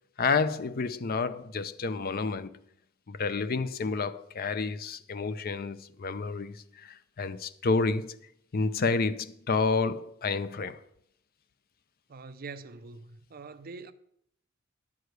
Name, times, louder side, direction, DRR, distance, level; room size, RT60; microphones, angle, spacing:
voice 1, 0.2-2.5 3.1-8.2 8.5-10.8, left 4 dB, 45° left, 0.5 m, -30 dB
voice 2, 12.1-13.9, right 4 dB, 45° right, 0.5 m, -44 dB
10.5 x 4.9 x 7.9 m
head